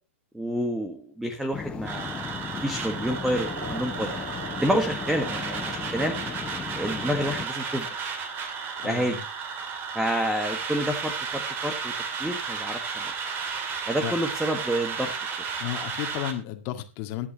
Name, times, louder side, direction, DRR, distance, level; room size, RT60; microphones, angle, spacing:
voice 1, 0.3-2.3 2.6-4.1 4.6-6.2 6.8-7.9 8.8-9.2 9.9-11.9 12.2-13.1 13.9-15.1, equal, 5° right, 8 dB, 1.5 m, -28 dB
sound 1, 1.5-7.5, left 6 dB, 15° left, 0.6 m, -36 dB
sound 2, 1.9-16.3, right 5 dB, 30° right, 2.5 m, -33 dB
sound 3, 3.0-9.0, right 1 dB, 85° right, 6.1 m, -43 dB
voice 2, 8.8-9.2 14.0-14.1 15.6-17.3, left 13 dB, 40° left, 7 dB, 1.9 m, -33 dB
23.0 x 8.5 x 3.0 m, 0.29 s
figure-of-eight pair, 105°, 7 cm